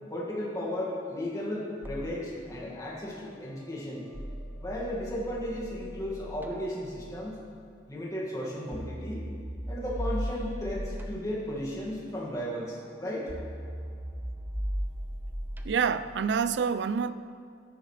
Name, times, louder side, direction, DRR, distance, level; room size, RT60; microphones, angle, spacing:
voice 1, 0.0-4.0 4.6-7.4 7.9-9.2 9.7-13.3, left 1 dB, 20° left, 2.1 m, -35 dB
sound 1, 1.8-7.0 8.7-16.1, equal, 10° right, 0.5 m, -38 dB
voice 2, 15.6-17.1, right 6 dB, 80° right, 0.4 m, -27 dB
13.5 x 10.5 x 3.3 m
head